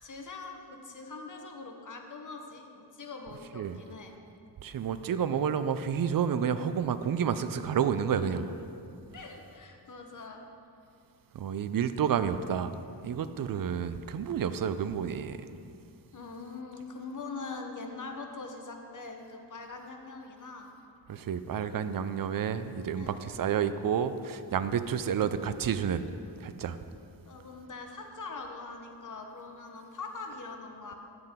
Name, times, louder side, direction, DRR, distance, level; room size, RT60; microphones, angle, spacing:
voice 1, 0.0-4.2 8.6-8.7 9.1-10.4 16.1-20.7 23.0-23.1 27.2-30.9, left 3 dB, 45° left, 3 dB, 1.0 m, -43 dB
voice 2, 4.6-8.5 11.3-15.4 21.1-26.1 26.4-26.8, right 8 dB, 55° right, 12 dB, 0.5 m, -30 dB
9.9 x 7.7 x 3.6 m, 2.5 s
wide cardioid pair, 90°, 43 cm